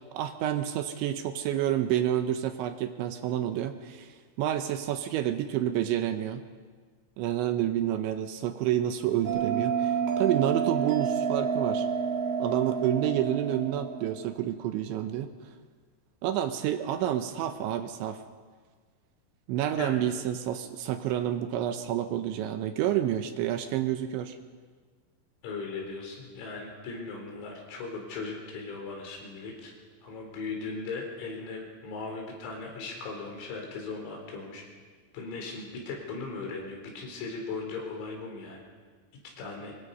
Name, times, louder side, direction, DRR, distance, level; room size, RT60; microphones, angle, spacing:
voice 1, 0.1-6.4 7.2-11.9 12.4-15.3 16.2-18.2 19.5-24.4, right 11 dB, 75° right, 8 dB, 3.0 m, -29 dB
Bell, 9.2-14.3, right 7 dB, 60° right, 4.5 m, -29 dB
voice 2, 25.4-29.7 30.0-34.6 35.1-38.6 39.4-39.7, left 4 dB, 90° left, 1 dB, 6.8 m, -38 dB
24.5 x 22.5 x 5.5 m, 1.5 s
omnidirectional pair, 5.9 m